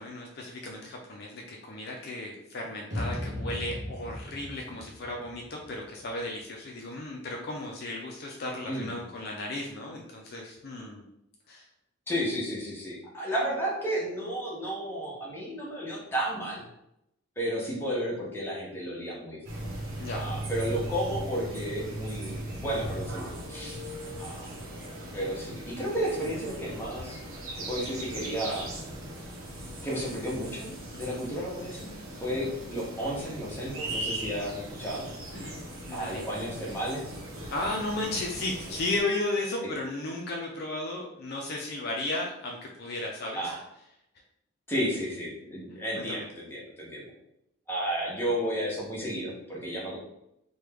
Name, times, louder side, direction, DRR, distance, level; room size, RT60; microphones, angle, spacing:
voice 1, 0.0-11.0 11.5-11.7 20.0-20.2 23.8-24.0 30.9-31.2 35.3-35.6 35.9-36.2 37.5-43.5 45.9-46.3, left 2 dB, 50° left, 0 dB, 0.4 m, -34 dB
sound 1, 2.9-6.1, left 1 dB, 35° right, 0.8 m, -37 dB
voice 2, 12.1-16.6 17.4-19.4 20.1-23.8 24.2-24.5 25.1-27.2 27.7-28.7 29.8-35.1 35.9-37.1 43.3-43.6 44.7-47.1 47.7-50.0, equal, 10° left, -5 dB, 0.8 m, -32 dB
sound 2, 19.4-39.0, right 1 dB, 90° right, 0.8 m, -39 dB
3.1 x 2.2 x 3.4 m, 0.81 s
head